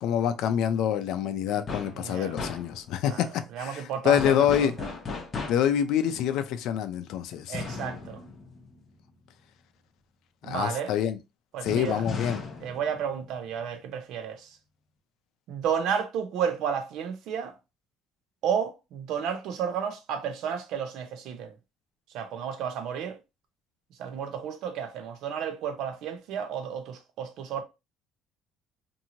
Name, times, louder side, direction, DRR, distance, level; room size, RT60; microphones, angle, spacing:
voice 1, 0.0-4.8 5.5-7.6 10.4-11.2 11.6-12.4, left 9 dB, 70° left, 0.4 m, -26 dB
sound 1, 1.7-2.0 2.4-3.0 4.2-5.8 7.5-9.4 11.7-13.8, left 4 dB, 30° left, 0.7 m, -37 dB
voice 2, 2.0-2.4 3.1-3.3 3.5-4.7 7.5-8.2 10.4-10.9 11.5-12.0 12.6-14.6 15.5-17.5 18.4-21.5 22.1-23.2 24.0-27.6, right 7 dB, 70° right, 0.6 m, -32 dB
2.9 x 2.6 x 2.7 m
cardioid pair, 150°, 0 cm